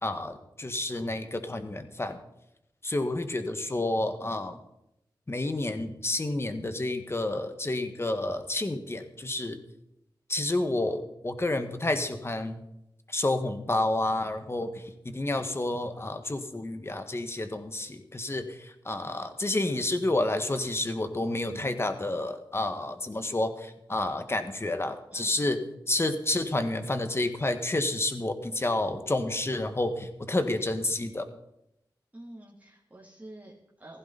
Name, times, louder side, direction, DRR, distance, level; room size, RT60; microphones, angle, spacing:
voice 1, 0.0-2.2 2.8-4.6 5.3-9.6 10.3-12.6 13.1-31.3, left 2 dB, 30° left, 8 dB, 1.6 m, -30 dB
voice 2, 32.1-34.0, right 1 dB, 20° right, -5 dB, 2.8 m, -48 dB
15.5 x 15.0 x 4.1 m, 0.82 s
wide cardioid pair, 70°, 8 cm